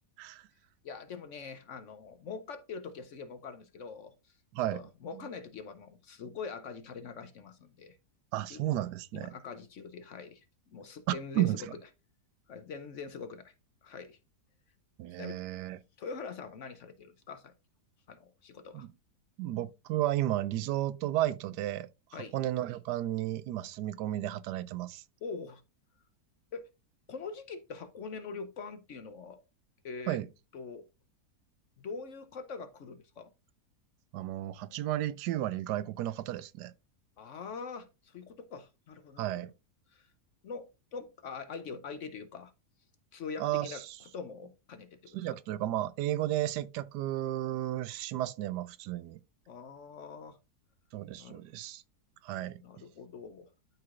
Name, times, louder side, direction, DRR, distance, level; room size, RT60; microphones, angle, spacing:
voice 1, 0.8-4.1 4.7-8.0 8.5-8.6 9.1-10.4 10.7-11.5 12.5-13.5 13.8-14.2 15.2-15.4 16.0-17.5 18.1-18.9 22.1-22.4 25.2-25.6 26.5-26.6 27.1-29.4 29.8-30.2 30.5-30.8 31.8-33.3 37.2-39.3 39.9-40.1 40.4-42.5 43.1-43.8 44.1-45.2 49.5-50.4 51.2-51.4 52.6-53.5, left 5 dB, 60° left, 0.9 m, -43 dB
voice 2, 8.3-9.3 11.1-11.6 15.0-15.8 18.7-18.9 19.4-21.9 22.3-25.0 30.1-30.3 34.1-36.7 39.2-39.5 43.4-43.9 45.1-49.2 50.9-51.8 52.2-52.6, right 14 dB, 85° right, 1.2 m, -33 dB
12.0 x 4.7 x 2.4 m
omnidirectional pair, 1.7 m